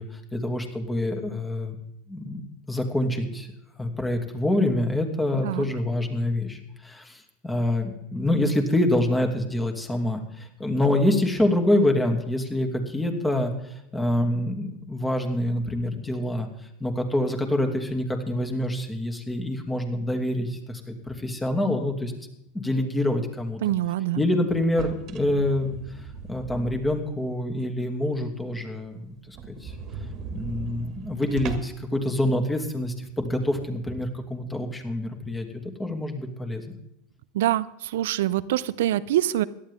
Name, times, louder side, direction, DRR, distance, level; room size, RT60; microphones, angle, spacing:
voice 1, 0.0-1.8 2.1-16.5 16.8-22.1 22.5-23.6 24.1-29.7 30.3-36.7, left 1 dB, 10° left, 4 dB, 2.6 m, -26 dB
voice 2, 23.6-24.2 37.3-39.4, right 13 dB, 75° right, 17 dB, 0.6 m, -25 dB
sound 1, 24.6-27.2 27.6-27.7 28.1-28.2 28.5-28.6 28.8-28.9 29.3-31.9, right 5 dB, 45° right, 2.0 m, -38 dB
17.5 x 12.0 x 3.7 m, 0.83 s
hypercardioid pair, 95°, 0 cm